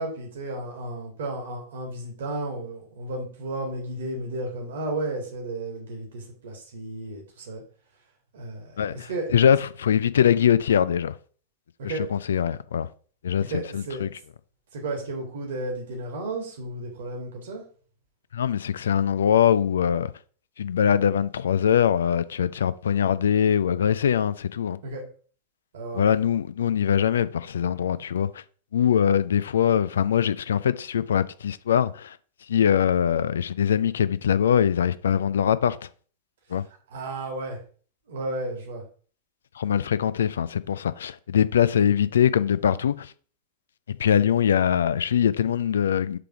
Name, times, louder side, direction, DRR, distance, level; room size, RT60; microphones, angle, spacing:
voice 1, 0.0-7.6 8.3-9.3 11.8-12.0 13.4-14.0 14.7-17.6 24.8-25.0 25.7-26.1 36.9-37.6 38.1-38.8, right 2 dB, 60° right, 1.7 m, -33 dB
voice 2, 8.8-11.2 11.8-12.9 13.2-14.1 18.3-20.1 20.6-24.8 25.9-28.4 28.7-32.2 32.5-35.8 36.5-36.6 39.6-43.1 44.0-46.2, left 8 dB, 65° left, 0.3 m, -22 dB
6.7 x 3.5 x 4.8 m
figure-of-eight pair, 90°, 0 cm